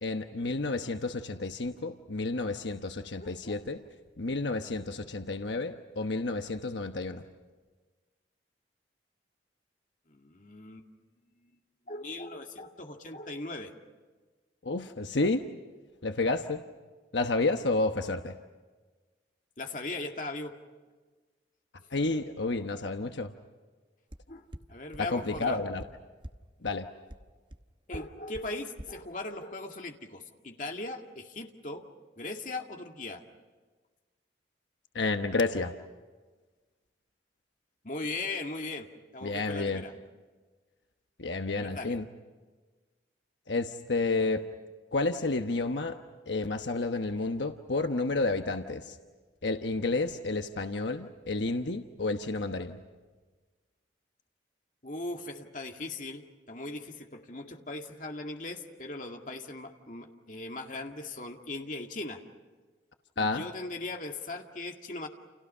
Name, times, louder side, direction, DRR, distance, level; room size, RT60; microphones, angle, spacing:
voice 1, 0.0-3.8 4.2-7.2 14.6-15.4 16.0-16.6 17.1-18.4 21.9-23.3 25.0-25.8 26.6-26.9 34.9-35.7 39.2-39.8 41.2-42.1 43.5-44.5 44.9-46.0 46.3-49.0 49.4-52.8 63.2-63.4, left 3 dB, 80° left, 6 dB, 1.1 m, -30 dB
voice 2, 3.2-3.6 10.1-10.9 11.4-11.5 11.9-13.7 19.6-20.5 24.3-25.6 27.9-31.9 32.2-33.2 37.8-38.9 39.1-39.9 41.6-42.0 54.8-62.2 63.2-65.1, left 2 dB, 45° left, 3 dB, 2.1 m, -39 dB
sound 1, 24.1-24.2 24.5-24.6 24.9-25.0 25.3-25.4 25.8-25.9 26.2-26.3 26.7-26.8 27.1-27.2 27.5-27.6 27.9-28.0 28.3-28.4 28.8-28.9, right 1 dB, 25° right, 1.0 m, -41 dB
30.0 x 29.0 x 5.6 m, 1.3 s
head